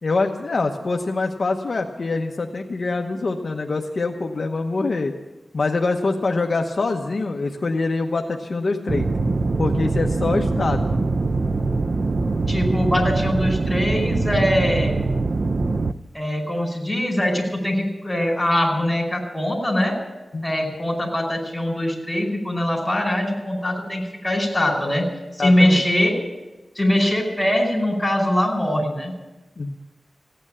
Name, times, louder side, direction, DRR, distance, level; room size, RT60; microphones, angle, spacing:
voice 1, 0.0-5.2 5.5-9.1 9.6-11.0 20.3-20.7 25.4-25.8 29.6-29.8, left 3 dB, 55° left, 3 dB, 1.0 m, -24 dB
sound 1, 8.9-15.9, right 3 dB, 45° right, 0.5 m, -23 dB
voice 2, 12.5-14.9 16.1-19.9 20.4-25.1 25.3-26.1 26.7-29.1, left 1 dB, ahead, 0 dB, 4.9 m, -22 dB
16.0 x 9.0 x 8.8 m, 1.1 s
wide cardioid pair, 90°, 0 cm